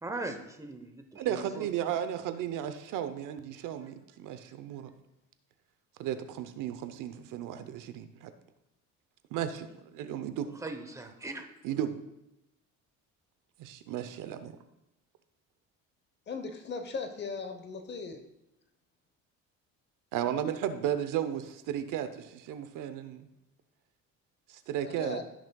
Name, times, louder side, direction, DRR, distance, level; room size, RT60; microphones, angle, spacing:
voice 1, 0.0-1.7 10.6-11.5, right 2 dB, 10° right, 6 dB, 0.9 m, -39 dB
voice 2, 1.1-4.9 6.0-8.3 9.3-10.5 11.6-12.0 13.6-14.6 20.1-23.3 24.5-25.2, right 10 dB, 70° right, 10 dB, 0.8 m, -34 dB
voice 3, 16.3-18.2 24.9-25.2, left 4 dB, 35° left, 7 dB, 0.9 m, -38 dB
16.0 x 6.2 x 2.3 m, 0.89 s
cardioid pair, 130°, 33 cm